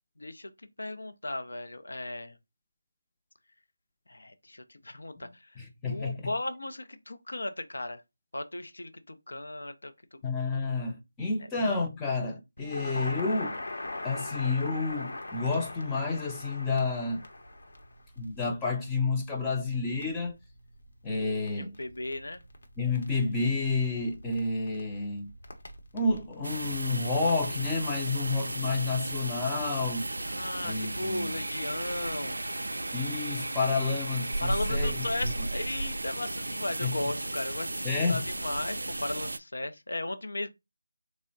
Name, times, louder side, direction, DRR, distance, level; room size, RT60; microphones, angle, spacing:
voice 1, 0.2-0.5 0.8-2.4 4.1-5.5 5.9-8.0 8.3-9.9 21.6-22.4 30.2-32.4 34.4-40.5, left 2 dB, 80° left, 0.6 m, -36 dB
voice 2, 5.6-6.3 10.2-13.6 14.0-17.2 18.2-20.4 21.0-21.8 22.8-25.3 25.9-30.1 30.6-31.4 32.9-35.3 36.8-37.1 37.8-38.2, left 3 dB, 10° left, 0.5 m, -30 dB
Crackle, 12.6-28.0, left 2 dB, 60° left, 0.9 m, -43 dB
sound 1, 26.4-39.4, right 2 dB, 80° right, 0.3 m, -34 dB
3.6 x 2.1 x 3.9 m
figure-of-eight pair, 165°, 0 cm